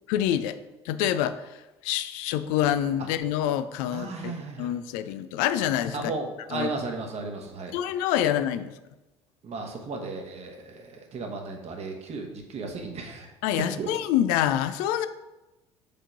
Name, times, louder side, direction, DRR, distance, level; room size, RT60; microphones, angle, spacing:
voice 1, 0.1-0.6 0.8-4.3 4.6-6.1 6.5-6.7 7.7-8.7 13.4-15.1, left 11 dB, 60° left, 12 dB, 0.5 m, -26 dB
voice 2, 3.9-4.7 5.9-7.7 8.2-8.3 9.4-13.3 13.8-13.9, right 3 dB, 45° right, 3 dB, 1.2 m, -35 dB
5.2 x 3.7 x 5.8 m, 1.0 s
figure-of-eight pair, 60°, 16 cm